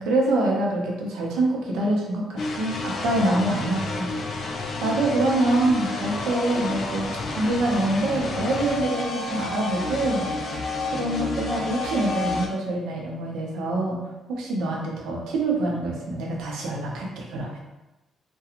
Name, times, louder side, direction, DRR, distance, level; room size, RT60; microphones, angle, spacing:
voice 1, 0.0-4.4 4.8-10.3 10.9-14.0 14.3-17.6, right 2 dB, 85° right, -1 dB, 0.6 m, -25 dB
sound 1, 2.4-12.5, left 3 dB, 60° left, 0.4 m, -30 dB
2.4 x 2.2 x 2.9 m, 1.0 s
cardioid pair, 90°, 0 cm